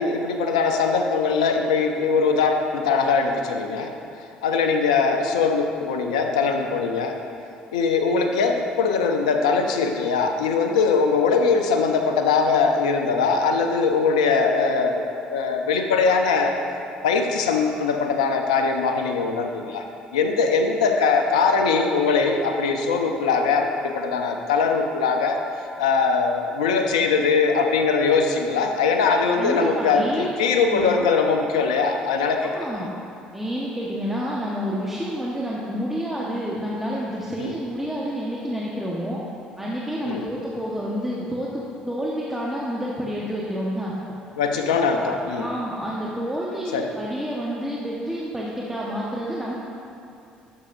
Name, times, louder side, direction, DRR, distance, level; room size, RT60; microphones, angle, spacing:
voice 1, 0.0-3.9 4.4-7.2 7.7-16.6 17.0-19.9 20.1-25.4 25.8-32.5 37.4-37.6 40.1-40.3 44.4-45.5 46.7-46.9, left 5 dB, 90° left, 5 dB, 0.5 m, -21 dB
voice 2, 29.4-30.3 30.7-31.1 32.5-32.9 33.3-39.2 39.6-43.9 44.7-45.1 45.4-49.6, equal, 5° right, -5 dB, 1.2 m, -29 dB
11.5 x 7.0 x 2.6 m, 2.7 s
hypercardioid pair, 60°, 4 cm